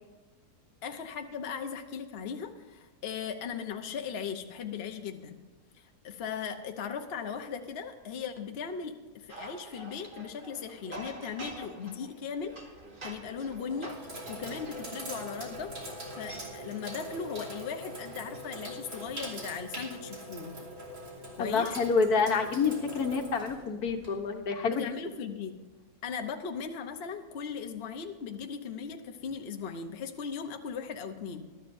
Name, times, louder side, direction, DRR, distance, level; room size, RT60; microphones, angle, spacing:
voice 1, 0.8-5.4 5.7-12.5 13.0-13.9 14.3-15.7 16.2-20.6 21.4-21.7 24.7-25.6 26.0-31.5, left 6 dB, 45° left, 5 dB, 1.0 m, -38 dB
sound 1, 9.3-19.3, right 1 dB, 35° right, 1.8 m, -48 dB
Sink (filling or washing), 12.4-12.8 13.5-24.4, right 1 dB, 55° right, 3.4 m, -43 dB
voice 2, 21.4-24.9, left 5 dB, 75° left, 5 dB, 1.6 m, -28 dB
21.0 x 12.0 x 2.6 m, 1.2 s
omnidirectional pair, 1.6 m